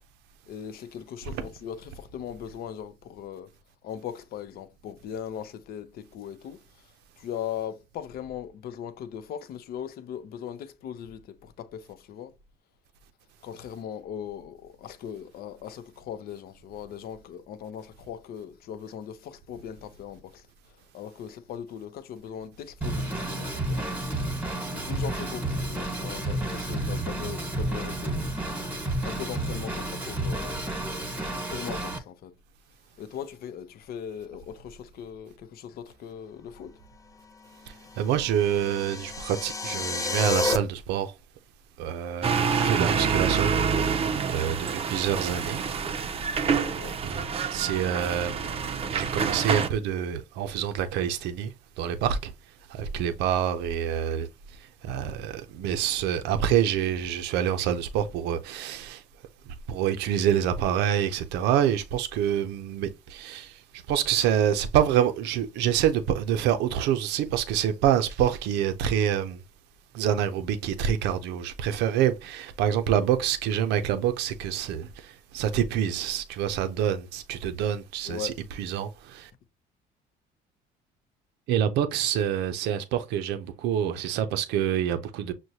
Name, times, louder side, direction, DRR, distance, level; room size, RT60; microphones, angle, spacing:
voice 1, 0.5-3.5 3.8-12.3 13.4-24.2 24.5-28.3 29.0-30.6 31.5-32.4 33.0-36.8 46.5-47.0 78.0-78.3, left 9 dB, 65° left, 0.6 m, -39 dB
Drum kit / Drum, 22.8-32.0, right 1 dB, 10° right, 1.2 m, -31 dB
voice 2, 37.7-41.1 41.8-45.6 47.0-48.6 48.9-52.3 52.7-59.0 59.5-69.4 69.9-79.3 81.5-85.3, right 9 dB, 90° right, 0.5 m, -27 dB
sound 1, 38.0-40.6, left 3 dB, 20° left, 0.5 m, -30 dB
sound 2, 42.2-49.7, right 6 dB, 35° right, 0.5 m, -27 dB
6.2 x 2.1 x 2.7 m
cardioid pair, 110°, 17 cm